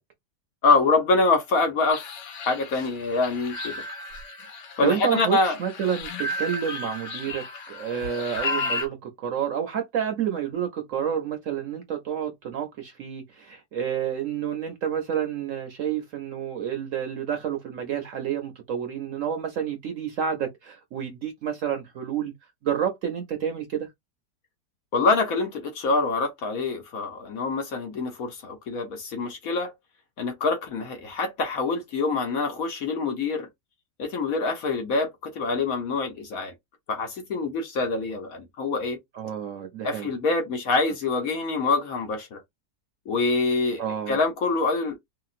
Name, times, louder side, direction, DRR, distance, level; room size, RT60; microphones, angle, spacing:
voice 1, 0.6-2.0 2.4-3.8 4.8-5.6 24.9-29.7 30.2-33.5 34.0-36.5 36.9-39.0 39.8-42.4 43.1-45.0, left 3 dB, 60° left, 1.1 m, -25 dB
sound 1, 1.9-8.9, left 3 dB, 75° left, 1.5 m, -33 dB
voice 2, 4.8-22.3 22.6-23.9 39.1-40.1 43.8-44.2, right 8 dB, 65° right, 0.8 m, -29 dB
2.9 x 2.8 x 2.4 m
omnidirectional pair, 1.9 m